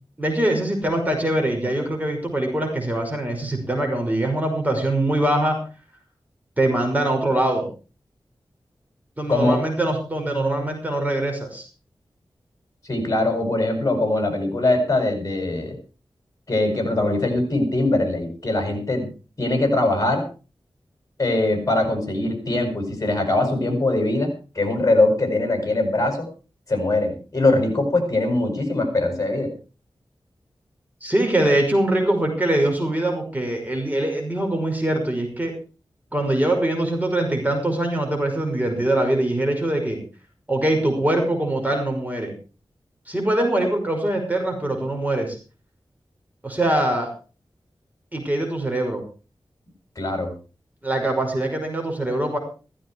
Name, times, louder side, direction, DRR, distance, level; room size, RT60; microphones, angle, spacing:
voice 1, 0.2-5.6 6.6-7.7 9.2-11.7 31.0-35.5 36.1-40.0 40.5-42.3 43.1-45.4 46.4-47.1 48.1-49.0 50.8-52.4, right 1 dB, 20° right, 2 dB, 5.8 m, -23 dB
voice 2, 9.3-9.6 12.8-15.8 16.5-19.1 19.4-20.3 21.2-26.3 26.7-29.5 50.0-50.3, left 2 dB, 40° left, 5 dB, 7.5 m, -22 dB
15.0 x 15.0 x 4.8 m, 0.35 s
wide cardioid pair, 75°, 9 cm